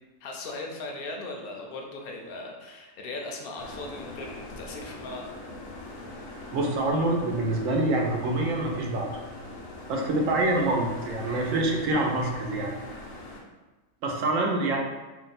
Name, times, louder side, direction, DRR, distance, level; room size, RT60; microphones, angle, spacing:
voice 1, 0.2-5.3 14.3-14.4, left 2 dB, 60° left, 1 dB, 0.6 m, -38 dB
sound 1, 3.6-13.4, left 2 dB, 80° left, 1.0 m, -42 dB
voice 2, 6.5-9.1 9.9-12.7 14.0-14.8, right 2 dB, 80° right, 1 dB, 1.0 m, -26 dB
2.7 x 2.1 x 4.0 m, 1.2 s
omnidirectional pair, 1.4 m